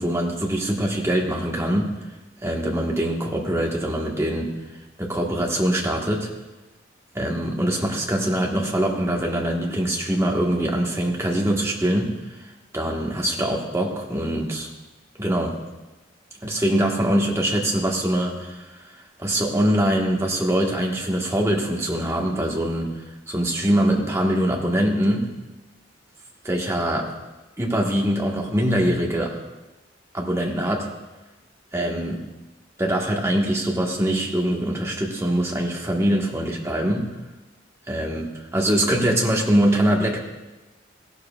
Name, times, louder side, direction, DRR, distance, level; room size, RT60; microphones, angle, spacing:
voice 1, 0.0-1.9 2.4-4.5 5.0-6.3 7.1-12.5 12.7-14.7 15.2-15.5 16.4-18.8 19.2-25.3 26.4-27.1 27.6-29.3 30.1-30.9 31.7-32.2 32.8-37.1 37.9-40.2, right 1 dB, 15° right, -2 dB, 1.5 m, -23 dB
16.0 x 12.0 x 2.4 m, 1.1 s
head